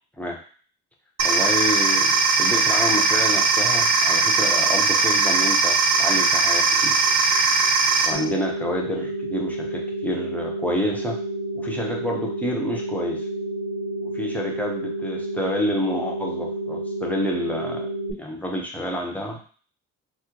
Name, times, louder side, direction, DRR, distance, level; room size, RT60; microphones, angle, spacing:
voice 1, 1.2-7.1 8.0-11.2 11.5-13.3 14.0-17.9 18.1-19.4, left 1 dB, 5° left, -1 dB, 0.7 m, -29 dB
sound 1, 1.2-8.1, right 4 dB, 60° right, 1.1 m, -19 dB
sound 2, 8.1-18.1, right 1 dB, 50° left, 0.9 m, -30 dB
3.0 x 2.0 x 3.6 m, 0.42 s
cardioid pair, 90°, 30 cm